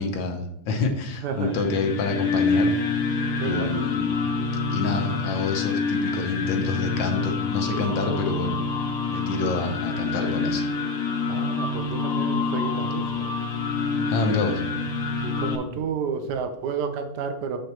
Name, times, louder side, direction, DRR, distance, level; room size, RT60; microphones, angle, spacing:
voice 1, 0.0-2.7 3.4-4.3 4.7-8.6 9.0-10.7 14.1-14.6, left 4 dB, 80° left, 5 dB, 1.6 m, -27 dB
voice 2, 1.2-1.7 3.4-3.7 11.3-13.3 13.9-14.5 15.2-17.6, right 6 dB, 65° right, 7 dB, 1.4 m, -31 dB
sound 1, 1.3-15.6, left 4 dB, 55° left, 1.3 m, -27 dB
sound 2, 4.4-15.5, left 6 dB, 40° right, 1.3 m, -41 dB
7.7 x 6.8 x 3.0 m, 0.78 s
omnidirectional pair, 2.0 m